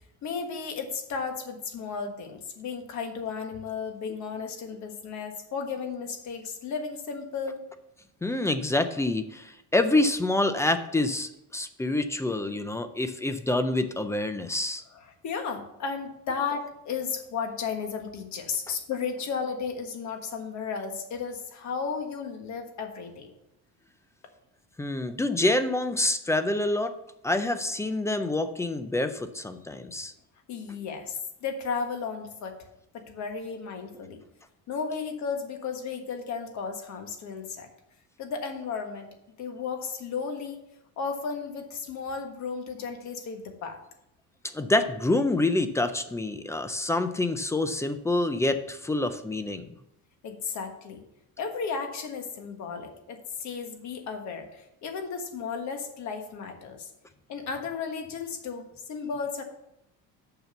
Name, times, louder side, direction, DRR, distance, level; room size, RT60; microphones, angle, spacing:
voice 1, 0.2-7.6 14.9-23.3 30.5-32.6 32.9-34.2 34.7-37.7 38.2-40.6 41.0-43.8 50.2-51.0 51.4-56.9 57.3-59.4, left 5 dB, 55° left, 5 dB, 1.4 m, -34 dB
voice 2, 8.2-14.8 24.8-27.0 27.2-30.1 44.4-49.7, left 2 dB, 10° left, 10 dB, 0.3 m, -27 dB
6.7 x 5.9 x 6.8 m, 0.83 s
cardioid pair, 160°, 35 cm